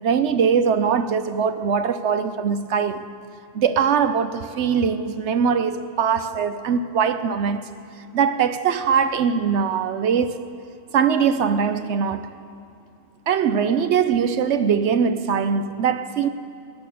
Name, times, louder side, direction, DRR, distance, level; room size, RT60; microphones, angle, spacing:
voice 1, 0.0-3.1 3.5-7.7 8.1-10.4 10.9-12.3 13.3-16.3, right 6 dB, 65° right, 0.9 m, -21 dB
22.0 x 9.3 x 6.8 m
omnidirectional pair, 1.4 m